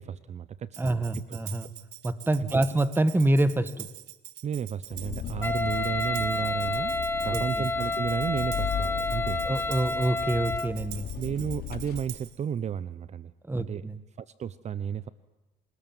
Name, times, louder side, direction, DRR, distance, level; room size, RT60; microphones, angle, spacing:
voice 1, 0.0-1.4 2.4-2.6 4.4-6.9 7.2-9.6 11.2-13.9 14.2-15.1, right 8 dB, 40° right, 16 dB, 0.8 m, -33 dB
Tambourine, 0.7-12.4, right 15 dB, 80° right, 1.7 m, -45 dB
voice 2, 0.8-1.7 2.0-3.9 7.3-7.6 9.4-11.1 13.5-14.0, right 1 dB, 10° right, 14 dB, 1.7 m, -26 dB
Engine, 4.9-12.0, left 10 dB, 70° left, 3.3 m, -37 dB
Wind instrument woodwind instrument, 5.4-10.8, left 2 dB, 15° left, 1.3 m, -29 dB
27.5 x 19.5 x 9.1 m, 1.1 s
cardioid pair, 110°, 17 cm